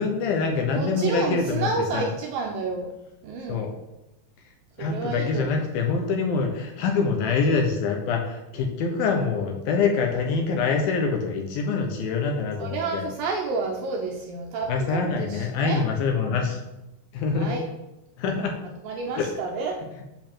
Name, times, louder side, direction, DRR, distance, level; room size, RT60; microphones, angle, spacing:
voice 1, 0.0-2.1 3.5-3.7 4.8-13.1 14.7-16.6 17.1-17.6 18.2-18.5 19.1-19.3, left 4 dB, 70° left, 2 dB, 2.5 m, -25 dB
voice 2, 0.8-2.9 3.2-3.7 4.8-5.6 12.6-15.8 16.2-16.5 17.3-17.6 18.8-19.8, right 4 dB, 75° right, 1 dB, 2.2 m, -30 dB
7.5 x 5.1 x 7.3 m, 0.95 s
omnidirectional pair, 4.8 m